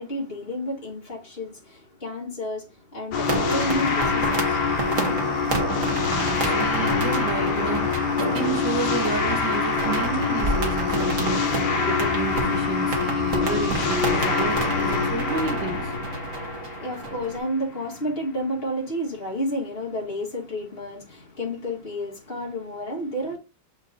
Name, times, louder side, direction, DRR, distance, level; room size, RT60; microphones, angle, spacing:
voice 1, 0.0-5.0 16.2-23.4, equal, 30° left, 1.8 m, -31 dB
sound 1, 3.1-17.5, left 5 dB, 80° left, 1.6 m, -25 dB
sound 2, 3.2-17.4, right 2 dB, 45° right, 1.6 m, -30 dB
voice 2, 5.9-8.0 8.3-15.9, right 5 dB, 70° right, 2.0 m, -31 dB
sound 3, 10.4-12.2, equal, 20° right, 4.1 m, -32 dB
7.2 x 5.2 x 2.7 m
omnidirectional pair, 2.1 m